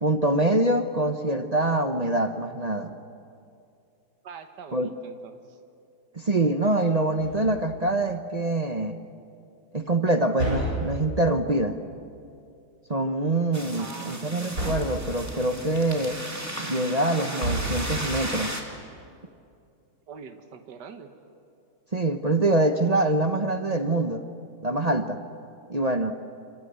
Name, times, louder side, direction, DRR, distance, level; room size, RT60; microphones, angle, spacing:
voice 1, 0.0-2.9 4.7-4.9 6.1-9.0 9.7-11.7 12.9-16.2 16.6-18.5 21.9-24.2 24.6-25.2 25.7-26.1, right 2 dB, 30° right, 7 dB, 0.7 m, -24 dB
voice 2, 4.2-5.4 13.8-14.2 20.1-21.1, right 6 dB, 65° right, 7 dB, 2.0 m, -43 dB
sound 1, 7.2-7.8 10.4-11.3 14.5-15.2 17.4-18.2, right 1 dB, 45° right, 8.6 m, -30 dB
sound 2, 13.5-18.6, right 1 dB, 10° right, 2.5 m, -35 dB
27.5 x 25.5 x 8.1 m, 2.5 s
omnidirectional pair, 2.0 m